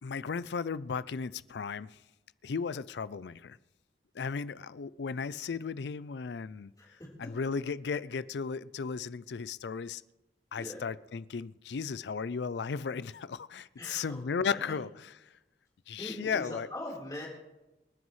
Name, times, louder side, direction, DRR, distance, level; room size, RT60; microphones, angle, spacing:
voice 1, 0.0-2.0 2.4-3.6 4.1-6.7 7.2-10.0 10.5-14.9 15.2-15.3 15.9-16.7, left 5 dB, 80° left, 18 dB, 0.4 m, -35 dB
voice 2, 6.8-7.1 10.6-10.9 13.8-14.8 16.0-17.3, left 1 dB, 20° left, -3 dB, 3.9 m, -42 dB
28.5 x 9.5 x 3.2 m, 1.0 s
head